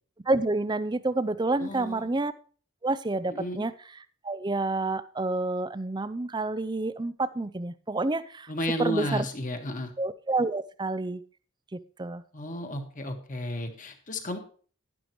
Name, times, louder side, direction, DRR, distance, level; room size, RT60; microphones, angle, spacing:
voice 1, 0.3-2.3 2.8-3.7 4.2-8.5 8.8-9.2 10.0-11.2 11.7-12.2, right 2 dB, 20° right, 14 dB, 0.5 m, -29 dB
voice 2, 1.6-2.1 3.3-3.7 8.5-9.9 12.3-14.4, left 1 dB, 40° left, 5 dB, 1.7 m, -33 dB
11.5 x 10.5 x 3.1 m, 0.42 s
head